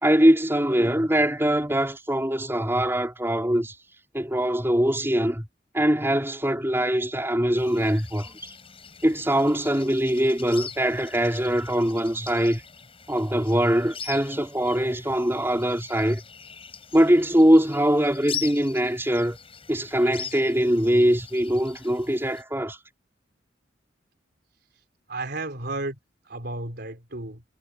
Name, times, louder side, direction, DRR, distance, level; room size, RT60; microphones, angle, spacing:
voice 1, 0.0-3.7 4.1-5.5 5.7-8.5 9.0-12.6 13.1-16.2 16.9-19.4 19.7-22.8, equal, 15° right, 4.4 m, -22 dB
sound 1, 7.5-22.4, left 7 dB, 30° left, 7.2 m, -42 dB
voice 2, 25.1-26.0 26.2-27.4, right 2 dB, 60° right, 4.2 m, -33 dB
head